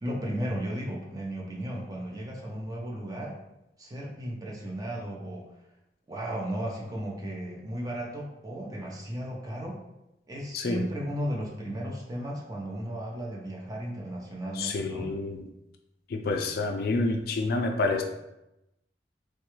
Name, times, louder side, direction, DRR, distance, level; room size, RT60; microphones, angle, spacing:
voice 1, 0.0-3.4 3.8-5.5 6.1-9.8 10.3-15.1, equal, 20° right, -2 dB, 0.5 m, -35 dB
voice 2, 14.6-15.4 16.1-18.0, left 3 dB, 60° left, 4 dB, 0.3 m, -28 dB
3.2 x 2.3 x 3.0 m, 0.88 s
head